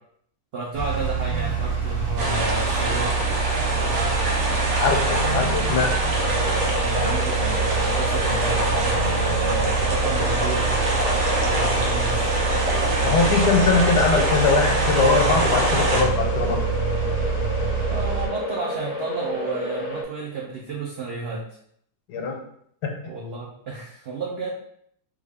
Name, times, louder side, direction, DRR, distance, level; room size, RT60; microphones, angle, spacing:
voice 1, 0.5-3.2 3.5-4.3 5.2-5.6 6.8-10.7 11.4-12.3 17.9-21.4 23.0-24.5, right 3 dB, 75° right, -3 dB, 0.5 m, -32 dB
sound 1, 0.7-18.3, right 5 dB, 30° right, 0.9 m, -26 dB
sound 2, 2.2-16.0, right 1 dB, 55° right, 0.9 m, -25 dB
voice 2, 4.7-5.9 13.0-16.6 22.1-22.4 22.8-22.9, left 4 dB, 90° left, 2 dB, 1.3 m, -21 dB
sound 3, 6.1-20.0, left 2 dB, 55° left, 0.8 m, -31 dB
3.4 x 2.3 x 3.4 m, 0.68 s
omnidirectional pair, 1.7 m